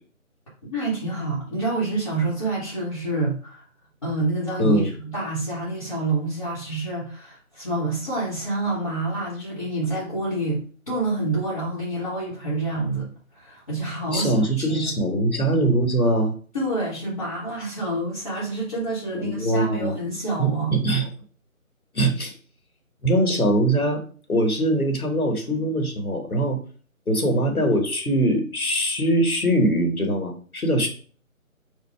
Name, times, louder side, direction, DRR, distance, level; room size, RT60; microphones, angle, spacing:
voice 1, 0.7-3.6 4.0-13.1 13.3-14.9 16.5-20.8, right 2 dB, 25° left, -9 dB, 1.1 m, -27 dB
voice 2, 4.6-4.9 14.1-16.3 19.1-20.0 20.4-21.1 21.9-22.3 23.0-26.6 27.1-30.9, right 1 dB, 90° left, 3 dB, 1.6 m, -22 dB
5.1 x 2.3 x 4.5 m, 0.42 s
figure-of-eight pair, 160°, 42 cm